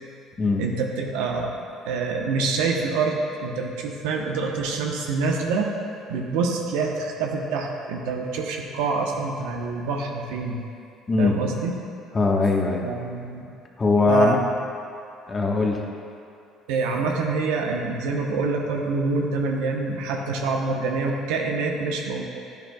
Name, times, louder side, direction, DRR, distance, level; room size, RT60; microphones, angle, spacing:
voice 1, 0.6-1.5 1.8-5.7 6.1-10.6 11.2-11.7 12.8-13.5 14.1-14.5 16.7-22.3, right 4 dB, 85° right, 1 dB, 1.0 m, -26 dB
voice 2, 11.1-11.4 12.1-12.8 13.8-14.4 15.3-15.8, left 3 dB, 30° left, 0 dB, 1.4 m, -20 dB
11.0 x 10.5 x 2.4 m, 2.6 s
supercardioid pair, 80°, 0 cm